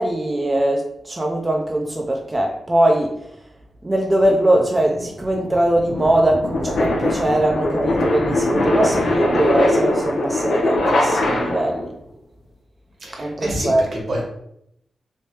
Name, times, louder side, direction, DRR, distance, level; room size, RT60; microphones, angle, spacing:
voice 1, 0.0-3.2 3.8-11.9 13.1-14.0, right 1 dB, 25° right, 0 dB, 0.5 m, -21 dB
sound 1, 4.3-11.9, left 1 dB, 80° left, 0.7 m, -21 dB
voice 2, 13.0-14.2, equal, 65° right, -1 dB, 1.3 m, -27 dB
3.3 x 2.7 x 3.0 m, 0.77 s
cardioid pair, 50°, 0 cm